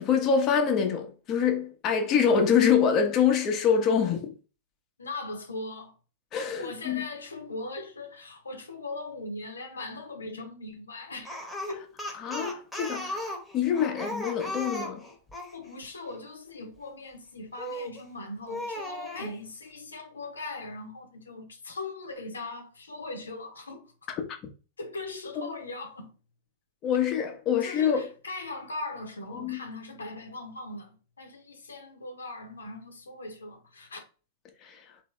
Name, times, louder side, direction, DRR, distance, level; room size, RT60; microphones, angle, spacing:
voice 1, 0.0-4.3 6.3-7.1 12.1-15.0 25.4-25.5 26.8-28.1 29.3-29.6 34.6-34.8, left 7 dB, 40° left, 0.9 m, -25 dB
voice 2, 5.0-5.9 6.5-11.3 11.7-11.9 13.9-14.0 15.5-23.9 24.8-26.1 27.6-34.0, left 2 dB, 90° left, 0.8 m, -39 dB
Speech, 11.2-15.6 17.6-18.0 18.5-19.3, left 1 dB, 5° left, 1.1 m, -36 dB
3.4 x 2.7 x 3.2 m
hypercardioid pair, 100°, 0 cm